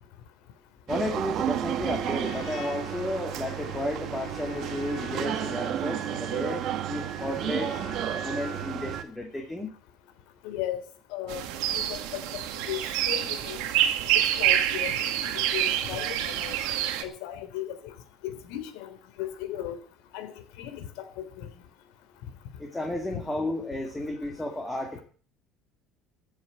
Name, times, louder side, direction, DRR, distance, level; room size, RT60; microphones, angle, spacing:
voice 1, 0.9-7.8 8.2-9.8 22.6-25.0, left 1 dB, 10° left, 1 dB, 2.3 m, -33 dB
sound 1, 0.9-9.0, right 10 dB, 45° right, 1.4 m, -32 dB
Trumpet, 1.7-9.0, left 6 dB, 60° left, 7.7 m, -45 dB
voice 2, 10.4-10.8 11.1-12.4 12.7-12.8 13.1-13.6 14.1-16.6 17.0-17.9 18.2-19.8 20.1-20.3 20.6-21.5 23.1-23.2, left 12 dB, 75° left, 9 dB, 3.4 m, -36 dB
sound 2, 11.3-17.0, right 11 dB, 80° right, 1.9 m, -27 dB
14.5 x 7.6 x 9.3 m, 0.41 s
cardioid pair, 160°, 0 cm